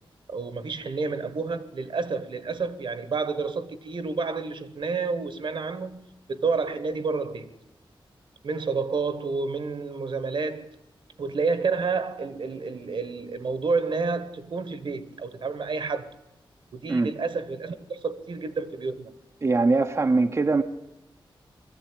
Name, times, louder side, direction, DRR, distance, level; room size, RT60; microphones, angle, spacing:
voice 1, 0.3-7.5 8.4-10.7 11.2-16.1 16.7-19.1, right 4 dB, 65° right, 1.4 m, -29 dB
voice 2, 19.4-20.6, right 3 dB, 35° right, 0.8 m, -22 dB
22.0 x 14.5 x 9.0 m
wide cardioid pair, 130°, 9 cm